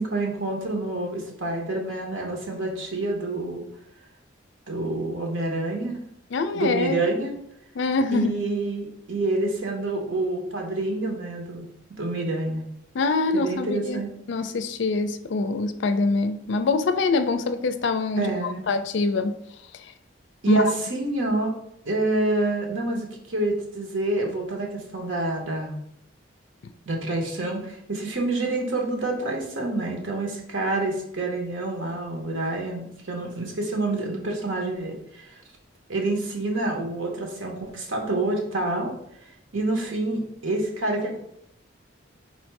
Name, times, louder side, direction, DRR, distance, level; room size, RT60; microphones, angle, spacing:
voice 1, 0.0-3.7 4.7-6.0 6.5-7.3 8.1-11.6 12.0-12.6 13.3-14.1 18.2-18.6 20.4-21.5 21.8-25.8 26.9-35.3 35.9-38.9 39.5-41.2, right 2 dB, 80° right, 1 dB, 1.0 m, -27 dB
voice 2, 6.3-7.0 7.8-8.3 12.9-14.0 14.3-19.3 20.5-20.7, left 3 dB, 65° left, 10 dB, 0.4 m, -24 dB
4.3 x 2.6 x 4.6 m, 0.75 s
head